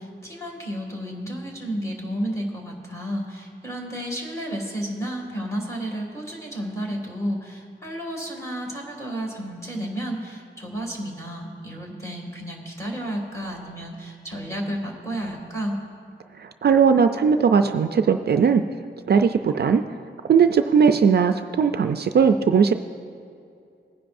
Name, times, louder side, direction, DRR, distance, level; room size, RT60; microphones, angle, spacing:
voice 1, 0.0-15.8, equal, 15° left, -1 dB, 2.2 m, -32 dB
voice 2, 16.4-18.6 19.1-19.8 20.3-22.7, right 6 dB, 55° right, 8 dB, 0.4 m, -18 dB
19.5 x 10.0 x 2.6 m, 2.5 s
wide cardioid pair, 140°, 20 cm